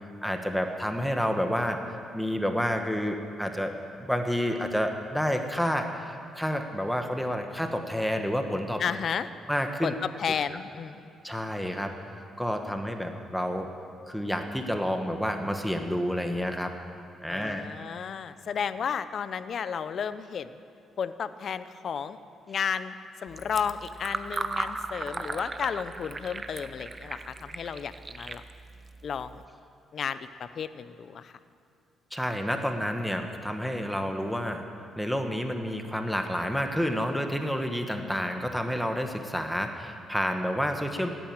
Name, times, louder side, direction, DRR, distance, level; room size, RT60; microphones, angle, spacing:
voice 1, 0.2-1.8 2.1-3.7 4.0-8.8 9.5-9.9 11.2-12.0 12.4-13.7 14.1-16.7 17.2-17.6 32.1-34.6 35.0-41.1, equal, ahead, 5 dB, 1.2 m, -29 dB
voice 2, 8.8-9.3 9.8-11.0 17.3-20.6 21.0-22.2 22.5-28.4 29.0-29.4 29.9-31.3, left 7 dB, 55° left, 13 dB, 0.7 m, -33 dB
Fill (with liquid), 23.3-29.5, right 3 dB, 30° right, 0.8 m, -37 dB
16.5 x 9.2 x 8.9 m, 2.5 s
cardioid pair, 90°, 0 cm